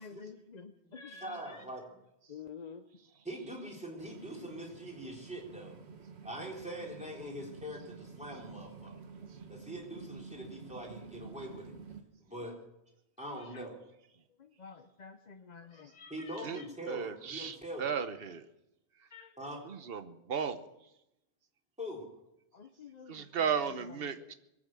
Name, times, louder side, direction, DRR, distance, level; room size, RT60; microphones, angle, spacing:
voice 1, 0.0-1.7 2.3-2.9 10.9-11.0 12.3-12.5 13.2-13.7 14.3-16.7 19.1-19.6 22.5-24.3, left 5 dB, 45° left, 6 dB, 0.8 m, -51 dB
voice 2, 1.2-1.8 3.3-5.8 6.2-8.9 9.5-11.7 12.3-12.5 13.2-13.8 16.1-17.8 19.4-19.6 21.8-22.1, equal, 5° right, -2 dB, 3.8 m, -43 dB
sound 1, 4.0-12.0, right 5 dB, 85° right, 1.5 m, -50 dB
voice 3, 16.9-18.5 19.0-19.1 19.6-20.7 23.1-24.3, right 7 dB, 65° right, 11 dB, 1.1 m, -35 dB
21.5 x 9.0 x 7.5 m, 0.88 s
omnidirectional pair, 1.1 m